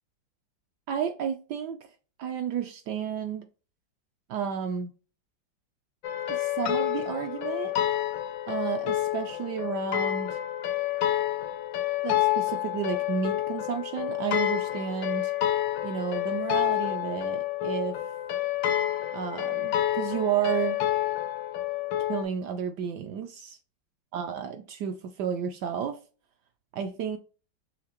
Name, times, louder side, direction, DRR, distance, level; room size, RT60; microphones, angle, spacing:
voice 1, 0.9-1.8 2.2-3.5 4.3-4.9 6.3-7.7 8.5-10.4 12.0-15.3 15.8-18.0 19.1-20.8 22.1-23.6 24.1-26.0 26.7-27.2, right 8 dB, 75° right, 1.1 m, -32 dB
sound 1, 6.0-22.2, left 13 dB, 80° left, 1.3 m, -29 dB
5.8 x 2.8 x 2.9 m
omnidirectional pair, 2.0 m